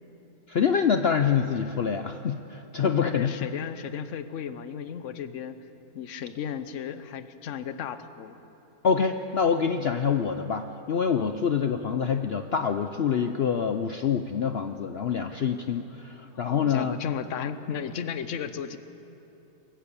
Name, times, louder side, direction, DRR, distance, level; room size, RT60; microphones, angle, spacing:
voice 1, 0.5-3.3 8.8-17.0, left 7 dB, 75° left, 8 dB, 0.5 m, -26 dB
voice 2, 2.8-5.5 5.9-8.4 11.1-11.3 16.3-18.8, left 8 dB, 55° left, 12 dB, 1.0 m, -35 dB
23.0 x 14.0 x 8.4 m, 3.0 s
omnidirectional pair, 1.8 m